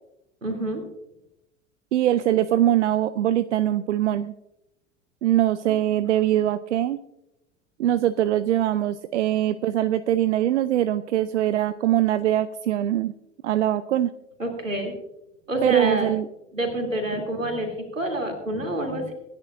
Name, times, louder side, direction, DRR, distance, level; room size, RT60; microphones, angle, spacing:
voice 1, 0.4-0.8 5.7-5.8 14.4-14.9 15.5-16.1 16.5-19.1, right 1 dB, 85° right, 3 dB, 3.0 m, -28 dB
voice 2, 1.9-4.3 5.2-7.0 7.8-13.1 13.4-14.1 15.6-16.3 17.1-17.2, right 12 dB, 65° right, 16 dB, 0.6 m, -22 dB
26.0 x 10.5 x 2.5 m, 0.88 s
figure-of-eight pair, 80°, 38 cm